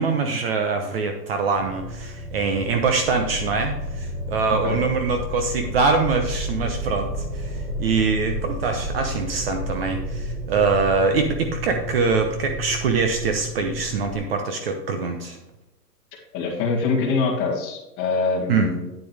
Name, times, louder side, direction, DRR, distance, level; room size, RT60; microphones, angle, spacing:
voice 1, 0.0-15.4 18.5-18.7, right 4 dB, 35° right, 5 dB, 0.9 m, -24 dB
sound 1, 1.5-14.2, equal, 5° right, 2.6 m, -31 dB
voice 2, 4.5-4.8 16.3-18.9, left 4 dB, 25° left, -1 dB, 2.1 m, -24 dB
9.4 x 8.5 x 3.4 m, 0.94 s
hypercardioid pair, 155°, 50 cm